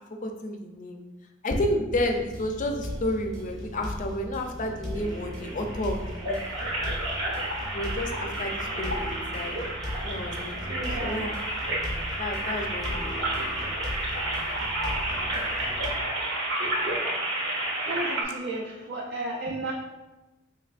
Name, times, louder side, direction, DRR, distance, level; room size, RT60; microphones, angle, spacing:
voice 1, 0.2-1.0 1.4-6.4 7.7-9.5 10.0-11.3 12.2-13.2, left 1 dB, 40° left, 4 dB, 0.4 m, -31 dB
sound 1, 2.0-15.9, equal, ahead, 0.9 m, -37 dB
sound 2, 5.0-18.2, right 1 dB, 75° right, 0.9 m, -31 dB
voice 2, 10.7-11.4 17.9-19.7, right 2 dB, 60° right, -2 dB, 0.4 m, -33 dB
4.4 x 3.1 x 2.4 m, 1.1 s
head